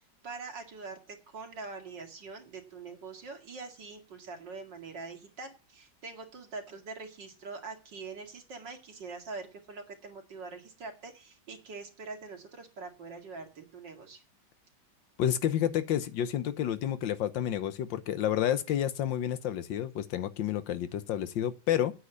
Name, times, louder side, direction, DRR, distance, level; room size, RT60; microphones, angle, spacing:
voice 1, 0.2-14.2, right 4 dB, 65° right, 2.8 m, -44 dB
voice 2, 15.2-21.9, left 10 dB, 70° left, 1.5 m, -30 dB
8.7 x 7.4 x 8.1 m
omnidirectional pair, 2.2 m